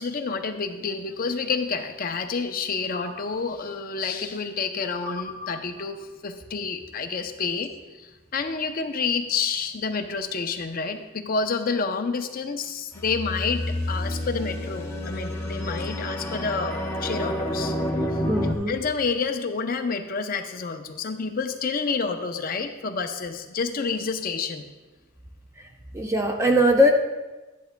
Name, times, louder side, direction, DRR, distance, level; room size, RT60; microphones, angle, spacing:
voice 1, 0.0-17.7 18.7-24.7, left 5 dB, 40° left, 6 dB, 0.5 m, -29 dB
sound 1, 12.9-18.5, left 1 dB, 10° left, 0.8 m, -29 dB
voice 2, 18.3-18.7 25.9-26.9, equal, 10° right, 3 dB, 0.4 m, -20 dB
11.5 x 10.5 x 2.2 m, 1.2 s
head